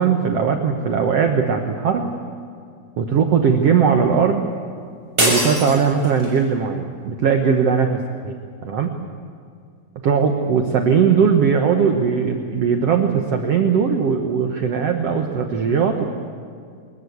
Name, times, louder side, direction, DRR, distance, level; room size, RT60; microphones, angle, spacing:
voice 1, 0.0-2.1 3.0-4.5 5.2-8.3 8.6-8.9 10.0-16.0, right 6 dB, 70° right, 4 dB, 1.4 m, -19 dB
sound 1, 5.2-6.4, right 1 dB, 15° right, 6.5 m, -22 dB
23.5 x 20.5 x 8.1 m, 2.3 s
omnidirectional pair, 4.6 m